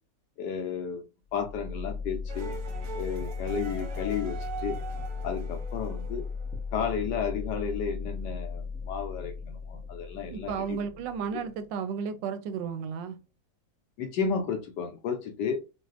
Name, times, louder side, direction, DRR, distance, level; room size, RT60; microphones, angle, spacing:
voice 1, 0.4-1.0 1.3-2.5 2.9-4.8 5.2-6.3 6.7-9.3 9.6-10.8 14.0-15.6, left 6 dB, 75° left, 1.2 m, -32 dB
sound 1, 1.3-13.2, left 5 dB, 10° right, 0.5 m, -37 dB
sound 2, 2.3-7.0, right 5 dB, 60° right, 0.9 m, -41 dB
voice 2, 10.3-13.2, right 6 dB, 85° right, 1.3 m, -33 dB
4.0 x 2.3 x 2.4 m
omnidirectional pair, 1.9 m